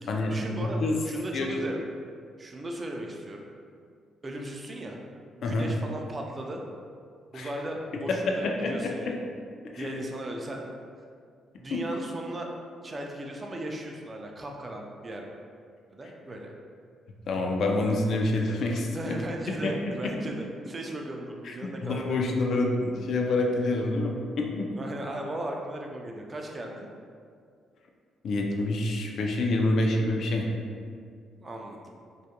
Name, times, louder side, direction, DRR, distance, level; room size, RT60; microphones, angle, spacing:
voice 1, 0.0-0.8 1.0-1.8 2.4-3.5 4.2-5.0 5.3-6.6 7.3-9.2 9.8-10.7 11.6-12.5 12.8-15.3 15.9-16.5 18.5-22.2 24.7-26.9 31.4-31.9, right 1 dB, 30° right, 1 dB, 0.3 m, -37 dB
voice 2, 0.6-1.0 1.3-1.5 5.4-5.7 7.3-7.5 8.3-9.1 9.7-10.0 11.7-11.8 17.3-19.2 19.6-19.7 20.0-20.1 21.4-21.5 21.8-24.7 28.2-30.5, left 2 dB, 65° left, 1 dB, 0.3 m, -27 dB
2.3 x 2.1 x 2.8 m, 2.2 s
cardioid pair, 90°, 0 cm